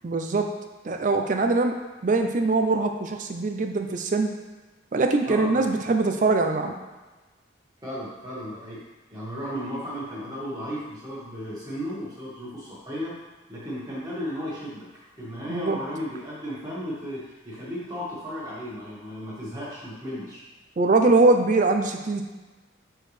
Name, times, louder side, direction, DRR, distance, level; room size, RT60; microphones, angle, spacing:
voice 1, 0.0-0.5 0.8-4.3 4.9-6.8 15.5-15.8 20.8-22.2, right 3 dB, 40° right, 5 dB, 0.4 m, -22 dB
voice 2, 5.3-5.6 7.8-8.8 9.1-13.1 13.5-14.8 15.2-20.4, equal, 20° right, -8 dB, 1.8 m, -34 dB
6.3 x 4.6 x 3.3 m, 1.2 s
head